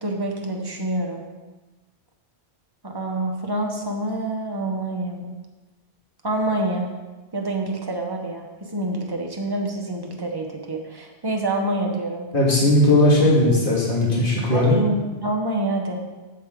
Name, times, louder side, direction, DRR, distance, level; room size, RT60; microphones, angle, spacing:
voice 1, 0.0-1.2 2.8-5.3 6.2-6.9 7.3-12.3 14.5-16.0, right 1 dB, 25° right, 1 dB, 1.1 m, -27 dB
voice 2, 12.3-14.8, left 1 dB, 55° left, -5 dB, 2.2 m, -17 dB
8.1 x 7.9 x 3.8 m, 1.2 s
omnidirectional pair, 1.0 m